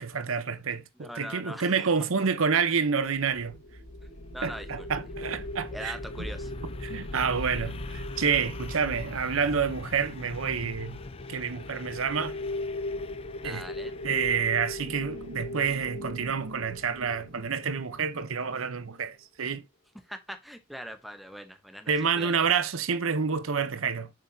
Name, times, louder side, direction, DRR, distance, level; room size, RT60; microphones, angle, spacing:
voice 1, 0.0-3.6 4.4-6.3 6.8-11.0 11.3-12.4 13.4-13.6 14.0-19.6 21.9-24.1, right 6 dB, 80° right, 0.7 m, -28 dB
voice 2, 1.0-1.9 4.3-4.9 5.2-5.3 5.7-6.5 13.4-13.9 20.0-22.3, equal, ahead, 0.8 m, -41 dB
sound 1, 3.1-18.2, left 1 dB, 80° left, 1.5 m, -39 dB
sound 2, 4.0-15.7, left 3 dB, 25° left, 0.4 m, -45 dB
6.8 x 5.7 x 2.7 m
head